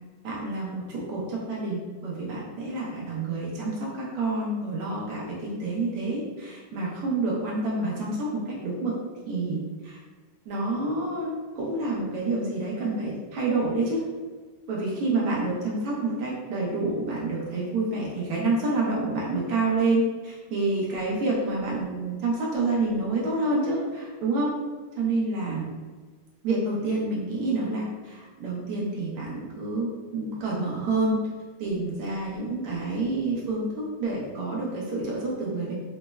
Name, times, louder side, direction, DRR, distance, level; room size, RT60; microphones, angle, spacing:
voice 1, 0.2-9.0 9.3-10.0 10.5-14.1 14.7-24.5 25.0-25.7 26.4-31.2 31.6-35.7, right 2 dB, 85° right, -4 dB, 1.6 m, -28 dB
5.1 x 2.0 x 2.2 m, 1.4 s
omnidirectional pair, 2.4 m